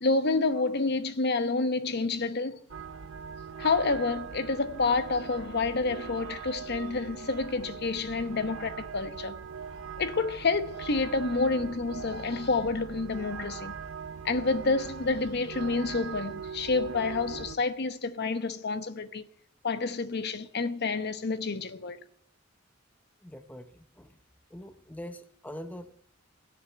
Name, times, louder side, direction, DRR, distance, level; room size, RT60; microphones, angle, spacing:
voice 1, 0.0-2.6 3.6-9.4 10.0-13.7 14.2-19.2 19.6-22.0, left 3 dB, 55° left, 0.9 m, -29 dB
sound 1, 2.7-17.6, right 6 dB, 80° right, 0.8 m, -41 dB
voice 2, 23.2-24.2 24.5-26.0, equal, 10° left, 0.7 m, -43 dB
17.0 x 7.1 x 9.5 m
head